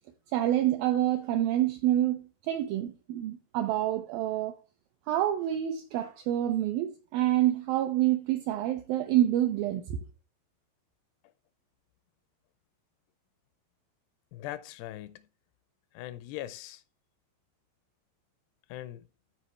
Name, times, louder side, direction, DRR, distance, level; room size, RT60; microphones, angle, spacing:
voice 1, 0.3-4.6 5.1-10.0, right 12 dB, 80° right, 2.1 m, -27 dB
voice 2, 14.3-15.3 15.9-16.8 18.7-19.0, left 14 dB, 85° left, 2.6 m, -40 dB
14.0 x 4.7 x 3.1 m
omnidirectional pair, 4.8 m